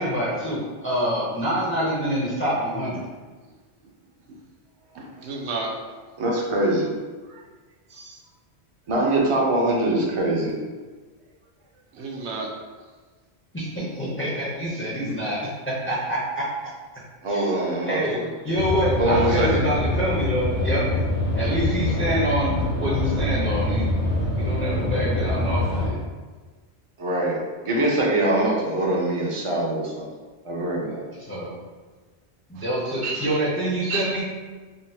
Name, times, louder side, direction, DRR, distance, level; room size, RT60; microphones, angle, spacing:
voice 1, 0.0-3.0 13.5-15.4 15.9-16.4 17.3-17.5 17.9-18.2 18.4-20.8 21.3-24.1 24.3-26.0 31.3-31.6 32.5-34.2, equal, 15° left, -7 dB, 0.5 m, -26 dB
voice 2, 5.0-5.7 7.9-8.1 11.9-12.5 33.0-33.3 33.9-34.1, right 3 dB, 85° right, -1 dB, 0.9 m, -31 dB
voice 3, 6.2-6.9 8.9-10.6 17.2-18.3 19.0-19.6 27.0-27.4 27.6-30.1 30.4-31.0, right 1 dB, 35° right, -3 dB, 0.5 m, -23 dB
sound 1, 18.6-25.9, left 1 dB, 65° left, 1.0 m, -25 dB
3.7 x 2.2 x 2.7 m, 1.4 s
omnidirectional pair, 1.1 m